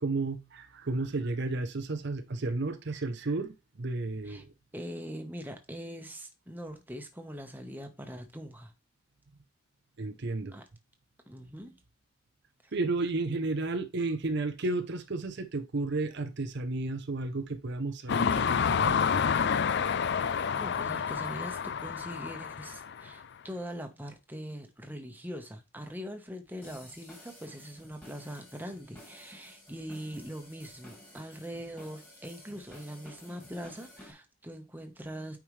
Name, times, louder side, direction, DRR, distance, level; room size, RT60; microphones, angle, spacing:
voice 1, 0.0-4.5 10.0-10.5 12.7-18.9, right 3 dB, 55° right, 0.7 m, -32 dB
voice 2, 4.7-8.7 10.5-10.6 11.3-11.8 12.6-12.7 20.0-35.4, equal, 10° right, 1.1 m, -42 dB
sound 1, 18.1-23.1, left 6 dB, 55° left, 0.4 m, -29 dB
sound 2, 26.6-34.1, left 1 dB, 10° left, 2.4 m, -52 dB
8.9 x 4.8 x 3.2 m
head